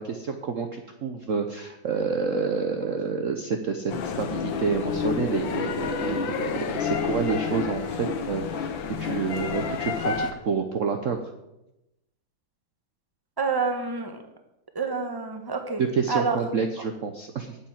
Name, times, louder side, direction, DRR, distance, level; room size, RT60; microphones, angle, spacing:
voice 1, 0.0-8.7 9.0-11.2 15.8-17.6, right 5 dB, 50° right, 5 dB, 1.1 m, -28 dB
sound 1, 3.9-10.3, left 6 dB, 85° left, 1.8 m, -29 dB
voice 2, 13.4-14.2 14.7-15.8 16.1-16.4, right 4 dB, 15° right, 5 dB, 1.2 m, -27 dB
9.5 x 7.5 x 9.0 m, 0.92 s
omnidirectional pair, 2.0 m